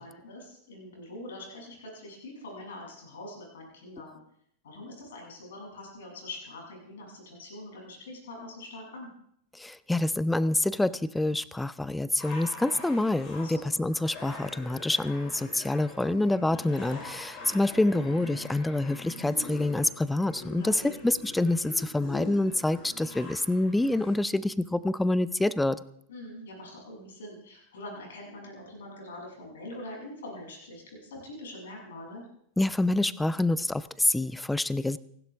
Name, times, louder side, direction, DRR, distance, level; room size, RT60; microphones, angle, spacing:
voice 1, 0.0-4.2 4.6-9.1 13.4-13.6 20.5-20.9 26.1-32.2, left 1 dB, 60° left, -1 dB, 7.8 m, -44 dB
voice 2, 9.6-25.8 32.6-35.0, left 2 dB, 5° left, 19 dB, 0.6 m, -27 dB
sound 1, 12.2-24.1, left 2 dB, 35° left, 6.1 m, -44 dB
29.5 x 12.0 x 3.6 m, 0.69 s
figure-of-eight pair, 90°, 0 cm